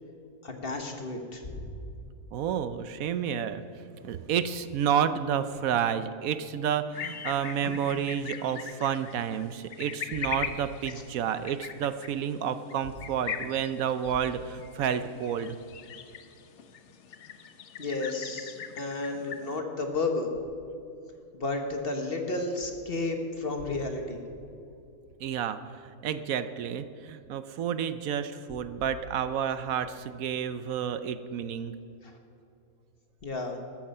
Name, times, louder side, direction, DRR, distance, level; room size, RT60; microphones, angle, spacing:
voice 1, 0.4-1.7 10.9-11.0 17.8-20.3 21.3-24.2 32.0-32.2 33.2-33.6, left 3 dB, 40° left, 4 dB, 1.5 m, -32 dB
voice 2, 2.3-3.6 4.0-15.6 25.2-25.6 26.0-31.7, right 8 dB, 75° right, 12 dB, 1.0 m, -30 dB
sound 1, 6.9-19.6, left 7 dB, 60° left, 1.0 m, -41 dB
13.5 x 13.0 x 5.5 m, 2.6 s
omnidirectional pair, 1.5 m